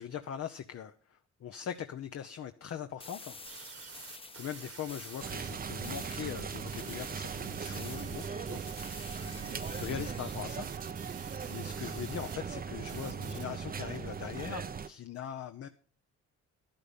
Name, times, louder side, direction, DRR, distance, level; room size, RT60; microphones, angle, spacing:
voice 1, 0.0-3.4 4.3-8.6 9.2-10.7 11.4-15.7, left 9 dB, 55° left, 8 dB, 0.9 m, -41 dB
sound 1, 3.0-5.5 5.8-6.3 6.8-10.5, left 3 dB, 20° left, 1.0 m, -50 dB
sound 2, 3.5-12.3 12.9-13.5, right 7 dB, 50° right, 1.4 m, -49 dB
sound 3, 5.2-14.9, right 6 dB, 30° right, 0.7 m, -39 dB
11.5 x 10.5 x 5.4 m, 0.43 s
cardioid pair, 90°, 30 cm